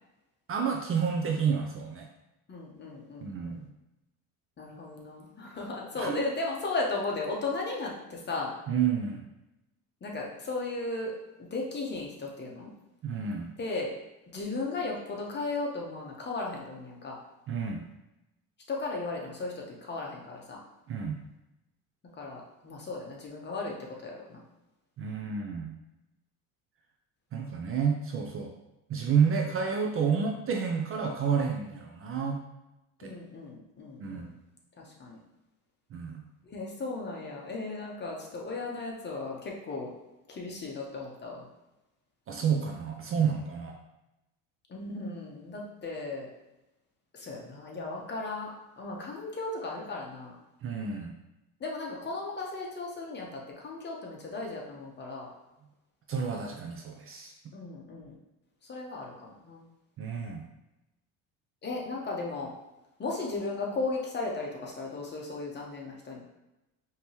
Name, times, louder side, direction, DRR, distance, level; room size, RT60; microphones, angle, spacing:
voice 1, 0.5-2.1 3.2-3.7 6.0-6.2 8.7-9.3 13.0-13.5 17.5-17.8 20.9-21.2 25.0-25.7 27.3-28.5 28.9-32.4 33.0-33.1 34.0-34.3 35.9-36.2 42.3-43.8 50.6-51.1 56.1-57.3 60.0-60.4, right 6 dB, 35° right, 2 dB, 0.5 m, -30 dB
voice 2, 2.5-3.6 4.6-8.5 10.0-12.7 13.6-13.9 14.3-17.2 18.7-20.6 22.2-24.4 33.0-34.3 34.8-35.2 36.4-39.9 40.3-41.4 44.7-46.3 47.1-48.5 48.8-50.4 51.6-55.3 57.5-58.1 58.7-59.6 61.6-62.5 63.0-66.2, left 3 dB, 30° left, -1 dB, 1.0 m, -36 dB
5.1 x 2.9 x 3.0 m, 0.96 s
supercardioid pair, 110°, 38 cm